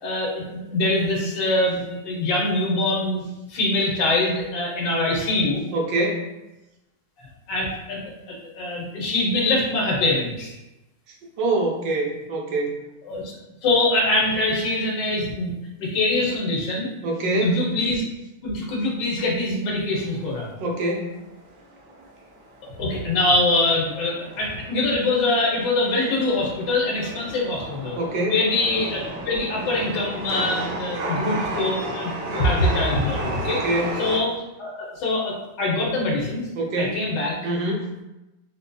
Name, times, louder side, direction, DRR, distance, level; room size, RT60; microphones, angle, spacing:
voice 1, 0.0-3.2 3.5-5.6 7.2-8.0 8.3-10.5 13.0-13.3 13.6-15.5 15.8-16.9 17.4-18.0 18.4-20.5 22.7-28.0 28.3-33.6 34.0-34.3 34.6-36.4 36.8-37.3, left 2 dB, 85° left, -3 dB, 1.5 m, -23 dB
voice 2, 5.7-6.3 11.4-12.8 17.0-17.5 20.6-21.2 28.0-28.4 33.4-34.0 36.5-37.0 37.4-37.9, right 2 dB, 90° right, 0 dB, 1.4 m, -25 dB
Chatter / Subway metro underground, 20.0-34.2, right 1 dB, 65° right, 0.8 m, -33 dB
4.5 x 2.5 x 2.2 m, 0.98 s
omnidirectional pair, 1.9 m